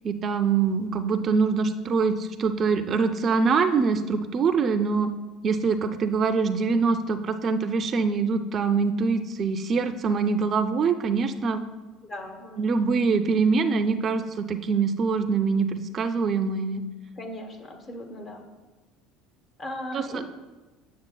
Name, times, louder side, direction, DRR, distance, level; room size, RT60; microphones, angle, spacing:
voice 1, 0.0-5.1 5.4-11.6 12.6-16.8 19.9-20.2, right 5 dB, 40° right, 9 dB, 0.4 m, -24 dB
voice 2, 12.0-12.6 17.2-18.5 19.6-20.2, left 1 dB, 40° left, 4 dB, 1.1 m, -37 dB
8.0 x 6.4 x 2.2 m, 1.2 s
supercardioid pair, 90°, 0 cm